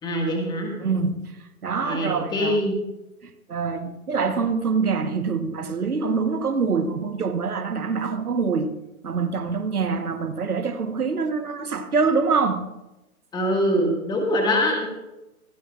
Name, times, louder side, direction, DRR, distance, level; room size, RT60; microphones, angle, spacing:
voice 1, 0.0-0.7 1.8-2.8 13.3-14.9, equal, 10° left, 1.7 m, -23 dB
voice 2, 0.8-1.3 1.6-2.6 3.2-8.7 9.0-12.7, right 5 dB, 85° right, 1.2 m, -25 dB
25.0 x 9.9 x 2.4 m
figure-of-eight pair, 140°, 43 cm